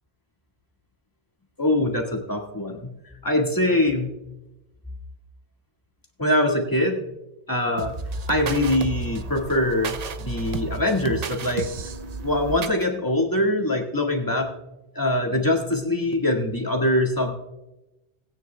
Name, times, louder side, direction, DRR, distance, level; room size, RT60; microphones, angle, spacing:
voice 1, 1.6-2.9 3.2-4.1 6.2-7.1 7.5-8.0 8.3-11.7 12.2-14.5 15.0-17.3, left 1 dB, 20° left, 1 dB, 1.8 m, -23 dB
sound 1, 7.8-12.9, right 4 dB, 45° right, 0.6 m, -32 dB
20.5 x 9.3 x 2.2 m, 0.96 s
omnidirectional pair, 1.0 m